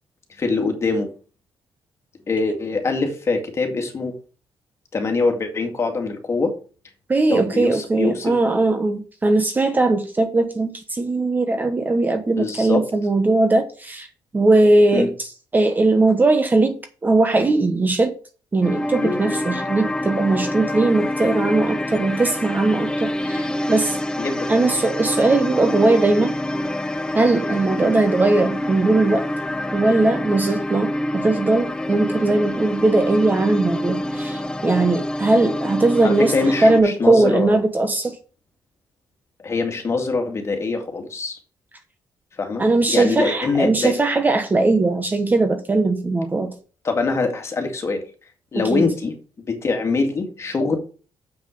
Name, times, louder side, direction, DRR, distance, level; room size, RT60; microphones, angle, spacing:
voice 1, 0.4-1.1 2.3-4.1 4.9-6.5 7.3-8.3 12.4-12.8 14.9-15.1 19.0-19.2 24.2-24.5 27.9-28.0 36.0-37.6 39.4-41.4 42.4-43.9 46.8-48.0 48.5-49.1 49.5-50.8, left 3 dB, 30° left, 2.2 m, -23 dB
voice 2, 7.1-14.1 14.3-18.1 18.5-24.0 24.5-26.4 27.1-29.3 29.7-36.3 36.6-38.2 42.6-46.5 48.5-48.9, right 2 dB, 20° right, 1.1 m, -19 dB
sound 1, 18.6-36.8, left 1 dB, 10° left, 0.7 m, -26 dB
7.3 x 6.0 x 5.3 m
cardioid pair, 140°, 9 cm